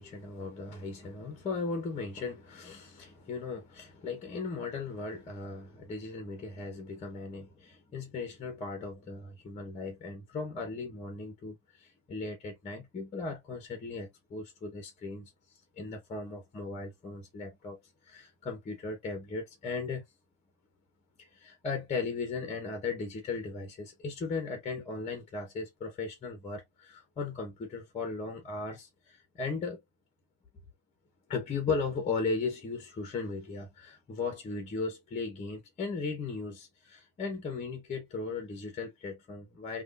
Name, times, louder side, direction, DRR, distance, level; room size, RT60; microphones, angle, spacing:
voice 1, 0.0-15.3 15.8-17.8 18.0-20.0 21.2-29.8 31.3-39.8, left 4 dB, 20° left, 1.1 m, -37 dB
3.4 x 2.5 x 2.5 m
hypercardioid pair, 105°, 35 cm